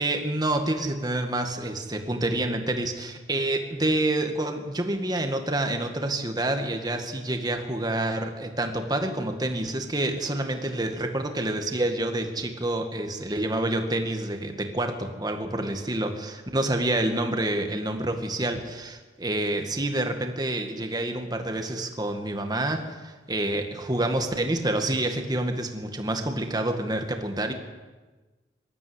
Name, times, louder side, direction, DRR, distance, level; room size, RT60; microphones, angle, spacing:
voice 1, 0.0-27.5, right 1 dB, 25° right, 5 dB, 1.9 m, -28 dB
20.0 x 13.5 x 9.7 m, 1.3 s
head